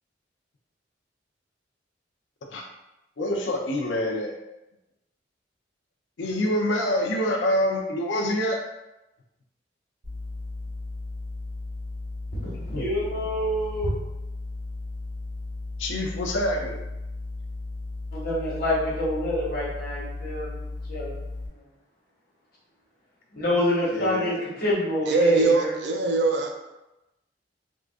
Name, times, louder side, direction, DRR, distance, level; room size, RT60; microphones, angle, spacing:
voice 1, 3.2-4.3 6.2-8.6 12.7-12.9 15.8-16.8 23.9-24.4, left 1 dB, 85° left, 1 dB, 0.5 m, -26 dB
sound 1, 10.0-21.5, left 2 dB, 90° right, 1.4 m, -35 dB
voice 2, 12.4-13.9 18.1-20.6 20.9-21.1 23.3-25.7, left 1 dB, 55° left, -7 dB, 1.3 m, -27 dB
voice 3, 25.1-26.5, right 3 dB, 65° right, 2 dB, 0.4 m, -22 dB
3.6 x 2.4 x 2.4 m, 0.96 s
head